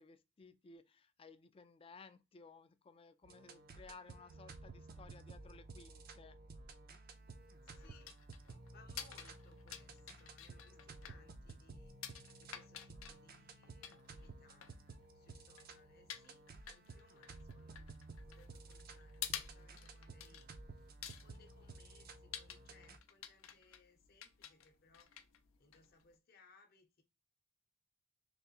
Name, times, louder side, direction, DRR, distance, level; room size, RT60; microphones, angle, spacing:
voice 1, 0.0-6.4, left 4 dB, 25° left, 0.3 m, -58 dB
sound 1, 3.2-23.0, right 3 dB, 45° right, 0.4 m, -54 dB
sound 2, 7.1-26.2, left 10 dB, 80° left, 0.5 m, -52 dB
voice 2, 7.6-8.1 8.7-12.0 12.4-14.7 15.1-17.9 18.3-20.9 21.2-25.2 25.6-27.0, left 3 dB, 50° left, 0.8 m, -67 dB
3.4 x 3.1 x 2.8 m
head